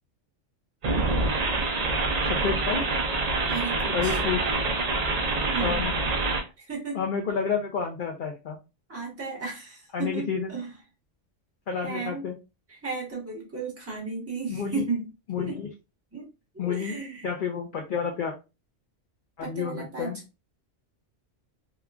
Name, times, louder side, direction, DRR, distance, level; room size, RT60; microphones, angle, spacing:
sound 1, 0.8-6.4, right 3 dB, 65° right, 0.4 m, -26 dB
voice 1, 2.2-2.9 3.9-4.5 5.6-5.9 6.9-8.6 9.9-10.5 11.7-12.4 14.5-14.8 15.3-15.7 16.6-17.0 17.2-18.3 19.4-20.2, left 6 dB, 60° left, 2 dB, 0.5 m, -30 dB
voice 2, 3.5-4.2 5.5-5.8 6.6-7.0 8.9-10.7 11.8-12.2 12.7-15.1 15.4-15.6 16.1-16.3 16.5-17.3 19.4-20.1, right 4 dB, 10° right, -3 dB, 1.0 m, -34 dB
3.1 x 2.3 x 2.3 m, 0.27 s
omnidirectional pair, 1.3 m